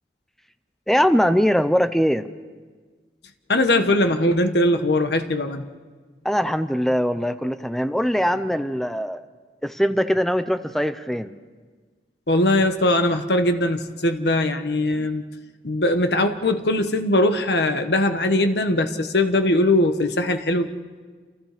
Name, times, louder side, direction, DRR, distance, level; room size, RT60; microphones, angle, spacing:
voice 1, 0.9-2.3 6.2-9.2 9.6-11.3, equal, ahead, 10 dB, 0.7 m, -21 dB
voice 2, 3.5-5.7 12.3-15.2 15.6-20.7, left 1 dB, 75° left, 7 dB, 1.4 m, -20 dB
28.5 x 28.0 x 5.1 m, 1.5 s
head